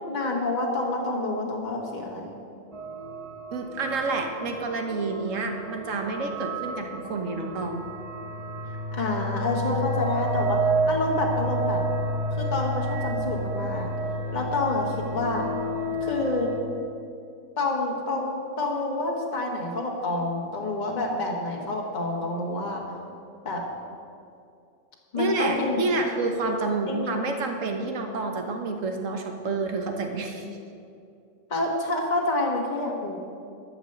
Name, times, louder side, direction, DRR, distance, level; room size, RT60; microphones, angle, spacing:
voice 1, 0.1-2.3 8.9-10.6 10.9-11.8 12.4-13.9 14.3-15.5 16.0-16.5 17.6-22.8 23.4-23.6 25.1-25.8 26.9-27.2 31.5-33.2, left 2 dB, 35° left, -1 dB, 1.6 m, -28 dB
sound 1, 2.7-16.6, right 1 dB, 30° right, 0.9 m, -30 dB
voice 2, 3.5-7.8 25.1-30.5, right 3 dB, 85° right, 4 dB, 1.5 m, -29 dB
12.0 x 6.7 x 7.9 m, 2.4 s
omnidirectional pair, 1.3 m